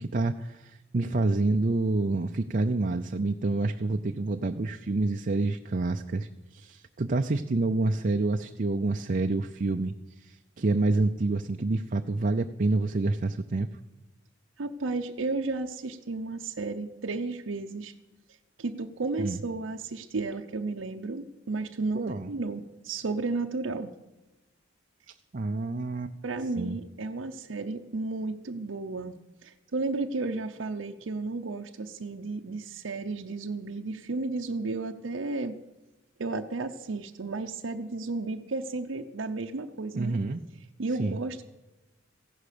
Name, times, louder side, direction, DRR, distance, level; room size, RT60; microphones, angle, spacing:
voice 1, 0.0-9.9 10.2-13.7 19.2-19.4 21.9-22.3 25.3-26.1 26.6-26.8 40.0-40.4 41.0-41.2, right 2 dB, 45° right, 5 dB, 0.5 m, -28 dB
voice 2, 14.6-17.9 18.6-23.9 26.2-29.1 29.4-35.6 36.2-40.2 40.8-41.4, right 3 dB, 85° right, 4 dB, 0.7 m, -33 dB
15.5 x 11.5 x 6.8 m, 1.0 s
head